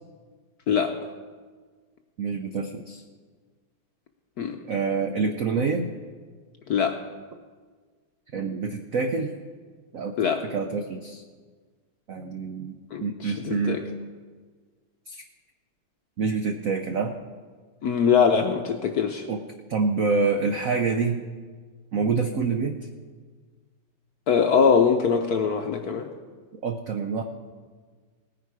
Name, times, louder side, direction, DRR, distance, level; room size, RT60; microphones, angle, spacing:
voice 1, 2.2-3.0 4.7-5.9 8.3-9.3 9.9-10.2 10.4-11.2 12.1-12.7 13.0-13.8 15.1-15.2 16.2-17.2 19.3-19.4 19.7-21.2 21.9-22.8 26.6-27.2, right 4 dB, 80° right, 6 dB, 0.7 m, -26 dB
voice 2, 12.9-13.8 17.8-19.3 24.3-26.1, left 6 dB, 65° left, 4 dB, 0.9 m, -22 dB
18.0 x 9.9 x 4.8 m, 1.5 s
omnidirectional pair, 2.4 m